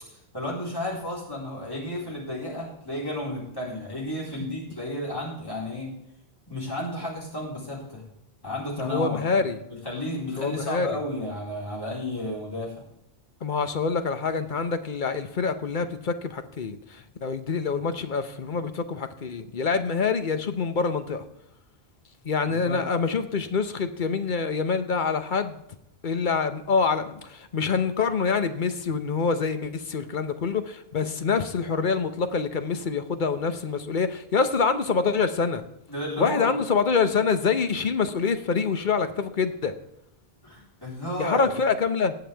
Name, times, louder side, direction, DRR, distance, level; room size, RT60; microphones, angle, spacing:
voice 1, 0.1-5.9 6.5-8.0 8.4-12.8 22.5-22.8 35.9-36.6 40.4-41.5, left 1 dB, 20° left, -5 dB, 4.0 m, -33 dB
voice 2, 8.8-9.6 10.4-11.0 13.4-21.2 22.2-25.6 26.0-35.6 36.2-39.7 41.2-42.1, left 5 dB, 55° left, 9 dB, 1.0 m, -26 dB
19.0 x 7.0 x 3.4 m, 0.82 s
omnidirectional pair, 1.1 m